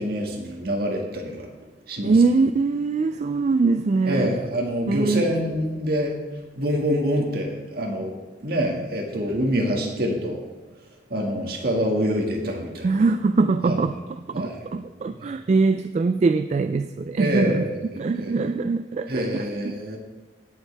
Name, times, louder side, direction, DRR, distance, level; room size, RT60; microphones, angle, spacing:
voice 1, 0.0-1.5 1.9-2.1 4.1-6.1 6.6-10.4 11.1-13.0 13.6-13.8 14.3-14.6 17.2-17.7 18.2-18.3 19.1-20.0, equal, 60° right, 0 dB, 1.9 m, -26 dB
voice 2, 2.0-4.3 4.9-5.3 12.8-19.7, right 4 dB, 40° right, 9 dB, 0.3 m, -23 dB
17.5 x 7.2 x 3.4 m, 1.3 s
head